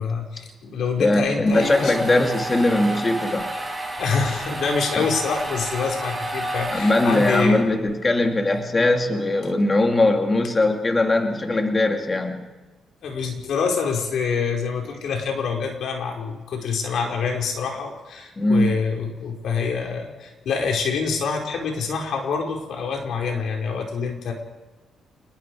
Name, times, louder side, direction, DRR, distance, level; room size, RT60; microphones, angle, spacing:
voice 1, 0.0-1.9 4.0-7.6 13.0-24.3, left 5 dB, 70° left, 1 dB, 5.0 m, -26 dB
voice 2, 1.0-3.5 5.0-5.1 6.7-12.5 18.4-18.8, left 2 dB, 25° left, 4 dB, 2.5 m, -20 dB
sound 1, 1.2-7.9, right 1 dB, ahead, 6.8 m, -30 dB
27.5 x 21.0 x 4.9 m, 1.2 s
cardioid pair, 90°, 0 cm